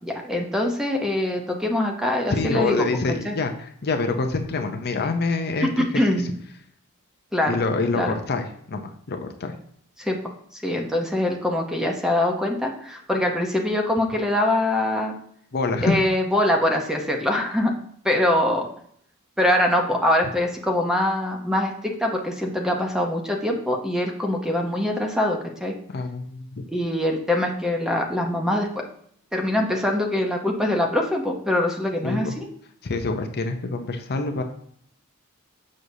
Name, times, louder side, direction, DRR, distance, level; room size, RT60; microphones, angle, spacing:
voice 1, 0.0-2.9 3.2-3.3 5.6-6.3 7.3-7.6 7.9-8.1 10.0-10.2 10.5-15.1 15.8-17.7 18.0-18.7 19.4-25.7 26.7-28.8 29.3-32.5, left 1 dB, 5° right, 2 dB, 0.8 m, -23 dB
voice 2, 2.3-5.7 7.5-9.6 15.5-16.0 25.9-26.7 32.0-32.3 32.8-34.4, left 3 dB, 45° left, 6 dB, 0.6 m, -26 dB
6.4 x 6.3 x 2.7 m, 0.65 s
head